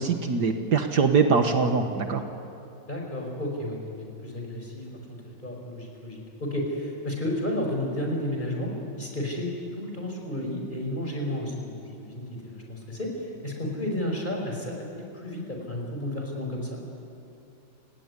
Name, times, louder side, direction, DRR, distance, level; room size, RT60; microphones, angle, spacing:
voice 1, 0.0-2.2, right 5 dB, 60° right, 6 dB, 1.8 m, -23 dB
voice 2, 2.9-9.5 9.8-14.9 15.1-16.8, left 1 dB, 25° left, 1 dB, 5.1 m, -32 dB
30.0 x 17.5 x 9.8 m, 2.8 s
omnidirectional pair, 2.0 m